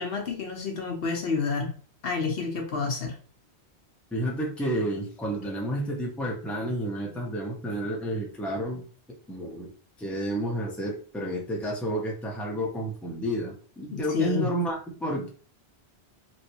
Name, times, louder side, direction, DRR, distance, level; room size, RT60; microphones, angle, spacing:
voice 1, 0.0-1.7 2.0-3.2 13.9-14.5, left 4 dB, 65° left, 0.8 m, -29 dB
voice 2, 4.1-8.8 9.3-9.7 10.0-15.3, right 1 dB, ahead, 0.7 m, -30 dB
3.0 x 2.8 x 2.7 m
omnidirectional pair, 1.1 m